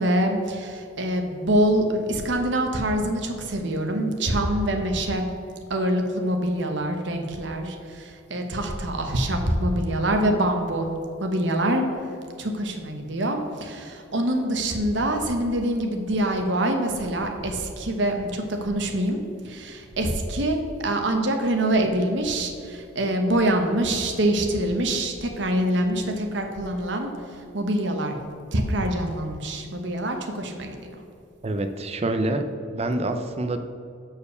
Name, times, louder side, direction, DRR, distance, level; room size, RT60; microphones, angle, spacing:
voice 1, 0.0-5.3 5.7-10.9 11.2-11.8 12.4-27.1 27.5-30.8, right 1 dB, 65° right, 4 dB, 1.0 m, -25 dB
voice 2, 31.4-32.4 32.7-33.6, right 2 dB, 30° right, 7 dB, 0.5 m, -26 dB
6.8 x 4.7 x 6.7 m, 2.4 s
head